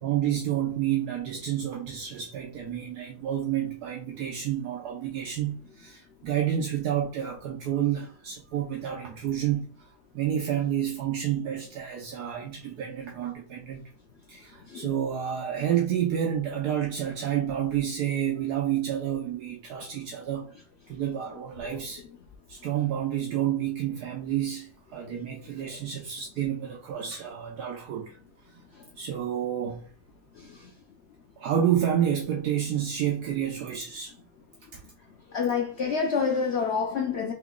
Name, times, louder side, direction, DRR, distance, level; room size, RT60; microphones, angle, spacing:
voice 1, 0.0-9.9 10.1-13.8 14.3-20.5 20.9-22.0 22.5-28.2 29.0-29.8 31.4-34.1 34.7-34.8, right 10 dB, 70° right, 1.2 m, -29 dB
voice 2, 35.3-37.3, left 5 dB, 85° left, 0.5 m, -27 dB
3.6 x 3.0 x 3.7 m
omnidirectional pair, 1.8 m